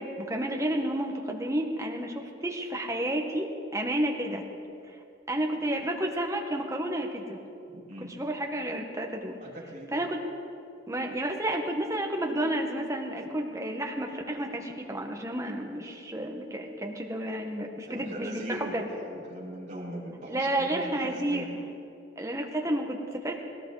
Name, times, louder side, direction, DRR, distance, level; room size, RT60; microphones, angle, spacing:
voice 1, 0.0-4.4 5.3-7.4 8.1-9.4 9.9-10.2 10.9-18.9 20.3-21.5 22.2-23.4, right 1 dB, 15° right, 2 dB, 1.4 m, -31 dB
voice 2, 7.7-8.1 9.4-10.1 17.9-21.5, right 1 dB, 40° right, -7 dB, 4.5 m, -40 dB
19.0 x 18.0 x 4.1 m, 2.6 s
head